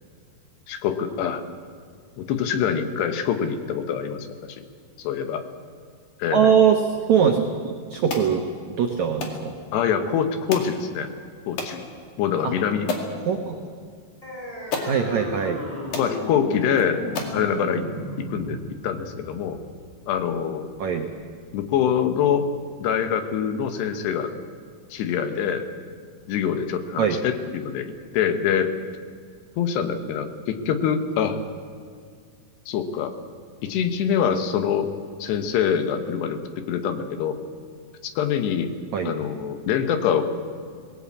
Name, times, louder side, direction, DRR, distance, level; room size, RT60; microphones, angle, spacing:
voice 1, 0.7-1.4 2.2-4.6 5.0-5.4 6.2-6.6 9.7-11.1 11.5-11.9 12.2-12.9 15.9-17.1 17.3-17.9 18.2-19.6 20.1-20.7 21.5-22.5 22.8-24.3 24.9-25.7 26.3-28.7 29.6-31.4 32.7-33.1 33.6-34.9 35.2-37.4 38.0-38.7 39.1-40.2, left 8 dB, 75° left, 8 dB, 3.2 m, -25 dB
voice 2, 6.3-6.8 7.1-9.5 12.4-12.5 13.2-13.6 14.8-15.6 20.8-21.1 27.0-27.2 38.9-39.1, right 7 dB, 85° right, 4 dB, 1.6 m, -22 dB
sound 1, 8.1-8.3 9.2-9.4 10.5-10.8 11.6-11.8 12.4-12.5 12.9-13.1 14.2-14.3 14.7-15.0 15.6-15.7 15.9-16.1 16.7-16.8 17.2-17.4, left 4 dB, 50° left, 3.3 m, -30 dB
sound 2, 14.2-21.2, equal, 10° left, 5.0 m, -35 dB
20.0 x 18.0 x 8.5 m, 2.1 s
omnidirectional pair, 5.1 m